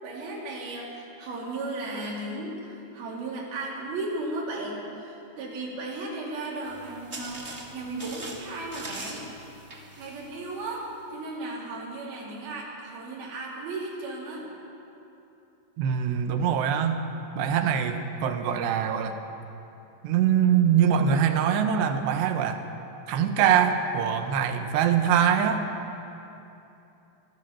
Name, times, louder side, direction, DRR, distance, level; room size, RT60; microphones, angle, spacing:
voice 1, 0.0-9.2 10.0-14.5, right 2 dB, 60° right, -4 dB, 5.2 m, -35 dB
sound 1, 6.6-11.0, right 2 dB, 25° right, 1.4 m, -42 dB
voice 2, 15.8-17.0 17.4-19.2 20.0-22.6 23.1-25.6, right 8 dB, 80° right, 6 dB, 3.3 m, -23 dB
24.5 x 14.5 x 7.5 m, 2.9 s
omnidirectional pair, 4.9 m